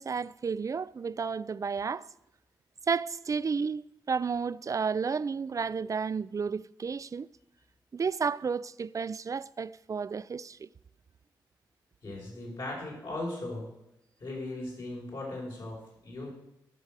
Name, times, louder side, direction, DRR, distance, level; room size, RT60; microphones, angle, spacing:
voice 1, 0.0-2.1 2.9-7.3 7.9-10.7, right 5 dB, 40° right, 0.4 m, -32 dB
voice 2, 12.0-13.7 14.2-16.3, left 2 dB, 65° left, 4.9 m, -38 dB
11.0 x 5.4 x 7.5 m
supercardioid pair, 50°, 8 cm